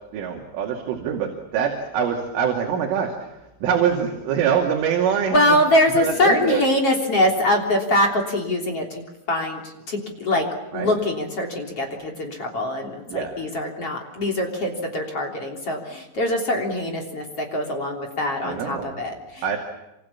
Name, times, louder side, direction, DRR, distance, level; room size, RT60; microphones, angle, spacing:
voice 1, 0.1-3.3 3.6-5.6 5.9-6.6 10.7-11.0 13.1-13.3 18.4-19.0 19.4-19.6, right 7 dB, 85° right, 1 dB, 5.1 m, -24 dB
voice 2, 5.3-10.5 10.7-19.6, left 1 dB, 35° left, 1 dB, 3.8 m, -23 dB
27.5 x 27.0 x 7.3 m, 0.96 s
omnidirectional pair, 5.5 m